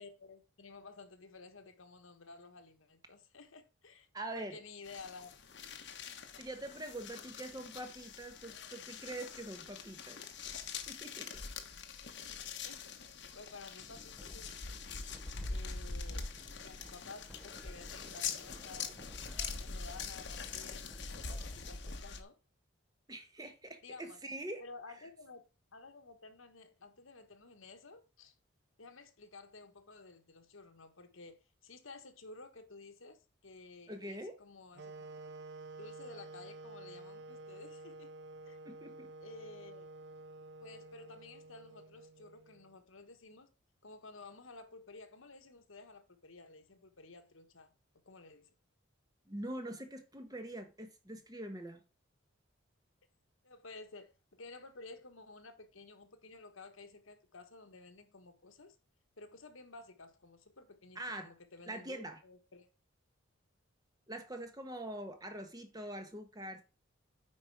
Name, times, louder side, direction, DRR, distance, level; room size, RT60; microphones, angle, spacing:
voice 1, 0.0-4.1 4.3-5.3 12.6-12.9 13.3-14.7 15.5-16.3 16.6-19.0 19.6-22.3 23.8-24.2 24.6-25.4 25.7-28.3 28.8-31.4 31.6-34.9 35.8-38.1 38.4-38.6 39.2-39.9 40.6-43.5 43.8-47.7 48.0-48.5 53.4-58.7 59.2-62.7, left 3 dB, 75° left, 1.4 m, -53 dB
voice 2, 4.1-4.6 6.4-10.2 10.9-11.3 23.1-24.6 33.9-34.4 38.6-39.1 49.3-51.8 60.9-61.3 61.7-62.2 64.1-66.6, right 1 dB, 20° right, 1.1 m, -44 dB
sound 1, 4.8-22.2, left 5 dB, 55° left, 1.1 m, -44 dB
sound 2, 13.8-21.9, equal, ahead, 0.7 m, -56 dB
sound 3, 34.7-42.8, right 2 dB, 55° right, 0.5 m, -50 dB
9.1 x 5.2 x 4.7 m
head